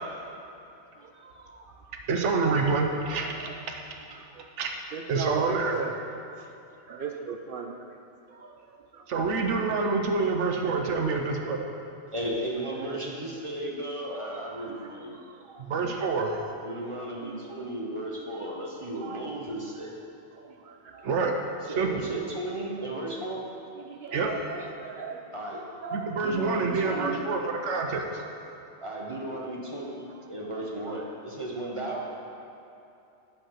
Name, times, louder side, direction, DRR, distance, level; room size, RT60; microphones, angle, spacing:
voice 1, 1.0-1.9 3.2-3.5 4.9-5.9 6.4-6.5 6.9-8.0 8.3-9.1 9.9-10.1 14.1-15.7 16.3-16.4 17.0-17.4 18.2-18.4 18.9-19.2 20.3-21.1 22.1-22.2 22.8-22.9 23.7-25.2 25.8-26.1 26.9-27.1 29.3-29.4 29.8-30.0 30.6-30.9, right 5 dB, 60° right, 3 dB, 0.6 m, -39 dB
voice 2, 2.1-3.3 4.6-4.8 5.1-5.8 9.1-11.6 15.6-16.4 21.0-21.3 21.8-22.0 24.1-24.3 25.9-28.2, right 4 dB, 90° right, 3 dB, 1.1 m, -27 dB
voice 3, 12.1-15.2 16.6-19.9 21.7-23.4 25.3-25.6 26.1-27.1 28.8-32.0, right 1 dB, 30° right, -2 dB, 0.9 m, -35 dB
7.8 x 4.6 x 5.8 m, 2.9 s
omnidirectional pair, 1.2 m